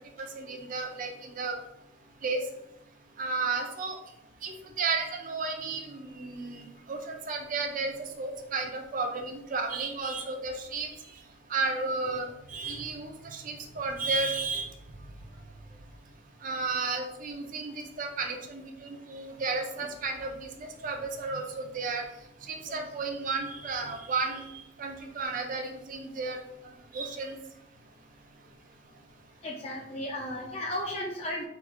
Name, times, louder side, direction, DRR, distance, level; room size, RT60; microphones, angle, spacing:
voice 1, 0.4-1.6 2.2-2.4 3.2-4.0 4.4-10.9 11.5-14.7 16.4-22.0 22.5-24.4 24.8-26.4 26.6-27.4, right 4 dB, 45° right, 3 dB, 0.5 m, -33 dB
voice 2, 29.4-31.5, left 1 dB, 30° left, -2 dB, 0.4 m, -35 dB
3.0 x 2.4 x 3.5 m, 0.80 s
head